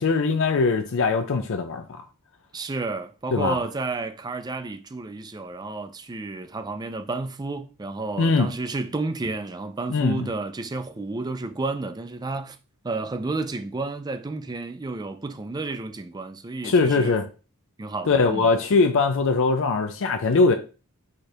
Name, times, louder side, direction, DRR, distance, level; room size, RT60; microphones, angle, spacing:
voice 1, 0.0-1.8 3.3-3.6 8.2-8.5 9.9-10.3 16.6-17.2 18.1-20.5, left 4 dB, 60° left, 0.5 m, -21 dB
voice 2, 2.5-12.6 12.8-17.1 17.8-18.5, right 3 dB, 20° right, 0.4 m, -31 dB
4.9 x 2.5 x 4.3 m
head